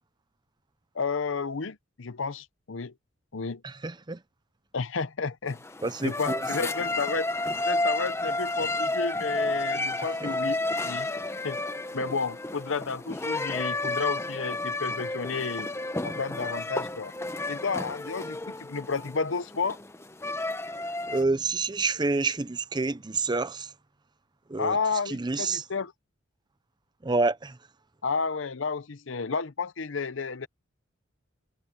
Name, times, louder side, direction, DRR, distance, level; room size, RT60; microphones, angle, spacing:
voice 1, 0.9-2.9 3.3-3.6 4.7-5.6 6.0-7.3 7.6-11.1 11.4-11.6 11.9-15.7 16.0-17.1 17.5-19.8 24.6-25.9 28.0-30.5, left 4 dB, 65° left, 0.8 m, -31 dB
voice 2, 3.6-4.2 5.8-6.5 10.2-10.3 21.1-23.7 24.5-24.8 25.1-25.6 27.0-27.6, right 3 dB, 20° right, 0.6 m, -28 dB
sound 1, 5.5-21.2, left 2 dB, 15° left, 0.8 m, -31 dB
head